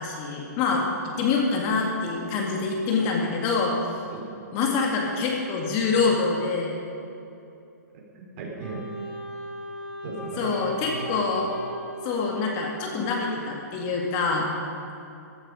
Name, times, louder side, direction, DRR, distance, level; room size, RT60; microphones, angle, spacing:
voice 1, 0.0-3.8 4.5-6.7 10.4-11.5 12.0-14.5, left 4 dB, 35° left, 0 dB, 2.2 m, -25 dB
voice 2, 7.9-9.2 10.0-11.0, right 3 dB, 40° right, -2 dB, 4.1 m, -37 dB
Wind instrument woodwind instrument, 8.6-13.2, right 1 dB, 5° left, 3.5 m, -38 dB
15.0 x 14.0 x 5.1 m, 2.7 s
hypercardioid pair, 140°, 10 cm